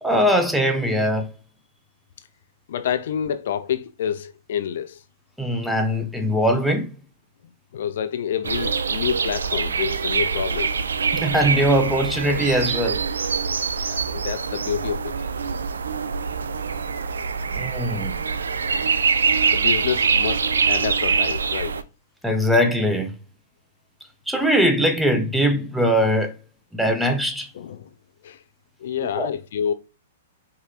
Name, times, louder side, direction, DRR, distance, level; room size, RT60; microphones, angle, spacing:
voice 1, 0.0-1.3 5.4-6.9 11.1-13.0 17.5-18.1 22.2-23.1 24.3-26.3 26.7-27.5 29.2-29.3, equal, ahead, 0.7 m, -21 dB
voice 2, 2.7-5.0 7.7-10.8 13.8-15.1 19.5-21.8 27.5-27.9 28.2-28.4 28.8-29.7, left 8 dB, 65° left, 0.4 m, -28 dB
sound 1, 8.4-21.8, right 5 dB, 80° right, 0.4 m, -24 dB
4.7 x 2.9 x 2.4 m
hypercardioid pair, 120°, 0 cm